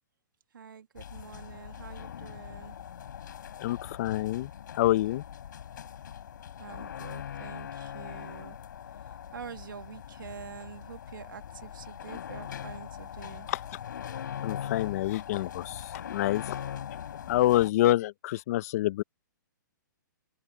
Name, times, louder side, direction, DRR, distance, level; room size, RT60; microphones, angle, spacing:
voice 1, 0.5-2.8 6.6-8.6 9.3-13.5, right 7 dB, 80° right, 2.6 m, -46 dB
sound 1, 0.9-17.7, left 9 dB, 70° left, 7.1 m, -41 dB
voice 2, 3.6-4.5 4.8-5.2 13.5-13.6 14.4-16.6 17.3-19.0, left 14 dB, 50° left, 1.1 m, -27 dB
open air
hypercardioid pair, 140°, 11 cm